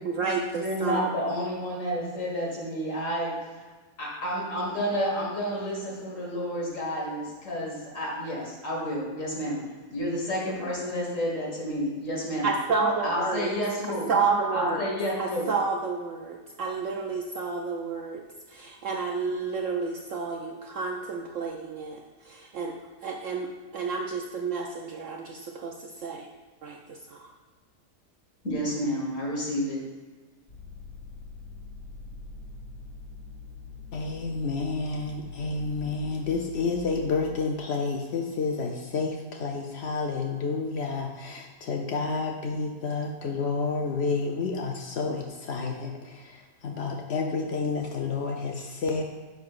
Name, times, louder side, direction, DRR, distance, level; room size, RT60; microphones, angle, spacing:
voice 1, 0.0-1.1 12.4-13.5 14.1-14.9 15.2-18.2 18.5-22.7 23.0-26.3 26.6-27.2, right 4 dB, 65° right, 2 dB, 0.8 m, -30 dB
voice 2, 0.6-3.4 4.0-9.6 9.9-12.5 13.0-14.1 14.5-15.5 28.4-29.8, equal, 50° left, -3 dB, 2.2 m, -30 dB
sound 1, 30.5-37.3, left 4 dB, 30° left, 1.5 m, -43 dB
voice 3, 33.9-49.0, left 4 dB, 75° left, 2 dB, 0.6 m, -30 dB
10.5 x 6.7 x 2.5 m, 1.4 s
omnidirectional pair, 1.8 m